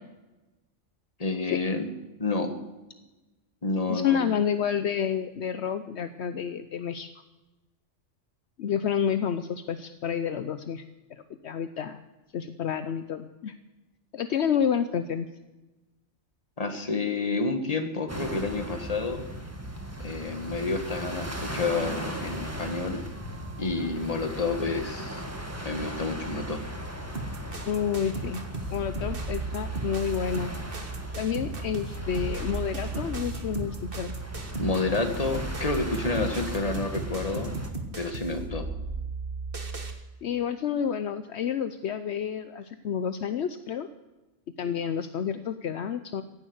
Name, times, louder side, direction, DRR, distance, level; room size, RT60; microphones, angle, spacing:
voice 1, 1.2-1.9 2.2-2.5 3.6-4.2 16.6-19.2 20.0-23.0 23.6-25.2 25.6-26.6 34.6-37.5 38.0-38.7, left 3 dB, 30° left, 7 dB, 1.7 m, -29 dB
voice 2, 3.9-7.1 8.6-10.8 11.1-12.0 12.3-13.6 14.1-15.3 27.7-28.4 28.7-30.5 31.2-34.1 40.2-43.9 44.6-46.2, left 8 dB, 70° left, 11 dB, 1.0 m, -29 dB
sound 1, 18.1-37.7, equal, 15° right, 1.9 m, -38 dB
sound 2, 27.1-39.9, right 3 dB, 50° right, 1.9 m, -35 dB
16.0 x 11.0 x 7.9 m, 1.1 s
omnidirectional pair, 1.2 m